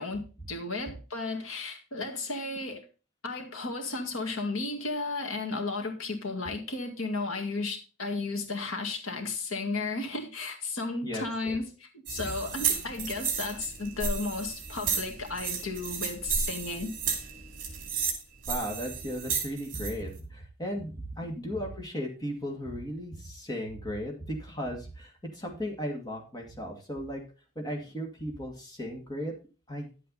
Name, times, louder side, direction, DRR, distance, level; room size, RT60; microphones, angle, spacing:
voice 1, 0.0-2.9 3.2-11.7 12.1-16.9, left 3 dB, 80° left, 2.0 m, -34 dB
voice 2, 11.0-11.6 18.5-27.2 27.6-29.3 29.7-29.9, equal, 20° left, 2.1 m, -36 dB
sound 1, 12.1-19.9, right 6 dB, 40° right, 2.9 m, -33 dB
11.0 x 7.9 x 4.0 m
head